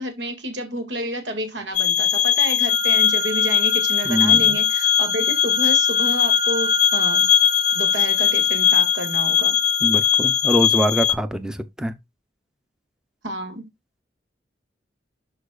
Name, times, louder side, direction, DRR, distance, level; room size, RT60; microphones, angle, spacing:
voice 1, 0.0-7.3 7.7-9.6 13.2-13.7, right 1 dB, 90° right, 2.1 m, -30 dB
sound 1, 1.7-11.1, left 9 dB, 40° left, 0.5 m, -19 dB
sound 2, 2.7-10.7, right 5 dB, 35° right, 2.3 m, -32 dB
voice 2, 4.0-4.6 9.8-11.9, equal, 5° right, 0.6 m, -24 dB
11.5 x 4.7 x 2.3 m
head